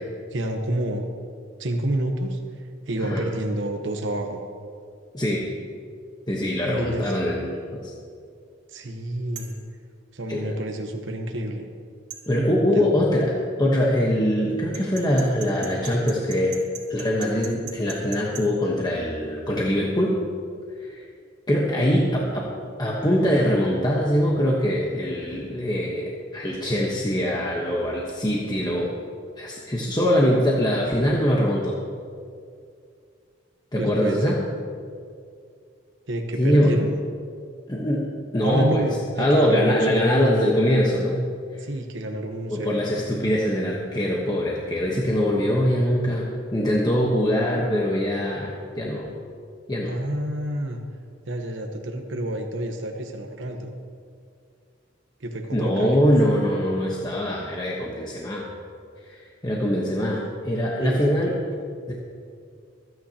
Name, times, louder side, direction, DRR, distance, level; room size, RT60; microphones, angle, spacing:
voice 1, 0.3-1.1 1.6-4.4 6.6-7.0 8.7-9.5 10.1-11.7 12.3-12.9 33.8-34.3 36.1-36.9 38.4-40.3 41.6-42.8 49.9-50.8 51.3-53.7 55.2-56.0 60.8-61.2, right 1 dB, 80° right, 3 dB, 1.0 m, -29 dB
voice 2, 5.1-5.5 6.3-7.9 10.3-10.5 12.3-20.2 20.8-21.1 21.5-22.5 22.8-29.0 29.4-31.8 33.7-34.4 36.4-36.8 37.7-38.9 39.2-41.3 41.5-41.6 42.5-49.1 49.7-49.9 55.5-58.5 59.0-61.4 61.9-62.0, equal, 20° left, -3 dB, 1.1 m, -23 dB
sound 1, 9.4-9.6 12.1-12.3 14.7-18.5, right 9 dB, 65° right, 2.1 m, -39 dB
24.5 x 9.2 x 2.9 m, 2.3 s
head